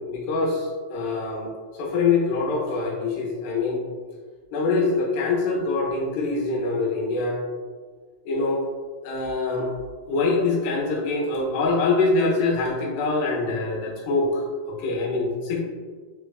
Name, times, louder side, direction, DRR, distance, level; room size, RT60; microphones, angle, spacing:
voice 1, 0.0-3.8 4.5-7.4 8.3-8.6 9.0-9.7 10.1-15.6, left 3 dB, 85° left, -2 dB, 2.7 m, -24 dB
5.9 x 2.2 x 2.3 m, 1.5 s
omnidirectional pair, 4.5 m